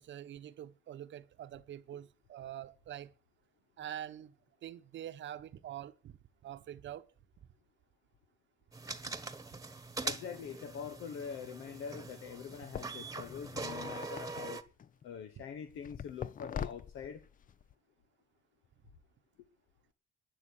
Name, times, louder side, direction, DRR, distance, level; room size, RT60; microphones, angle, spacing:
voice 1, 0.0-3.1 3.8-4.3 4.6-7.1, right 11 dB, 70° right, 1.0 m, -45 dB
sound 1, 8.7-14.6, right 3 dB, 15° right, 1.3 m, -43 dB
voice 2, 10.0-14.6 15.0-17.2, left 7 dB, 90° left, 1.3 m, -44 dB
sound 2, 12.7-15.0 15.8-17.7, left 8 dB, 45° left, 0.6 m, -43 dB
11.5 x 10.0 x 8.3 m
cardioid pair, 90°, 20 cm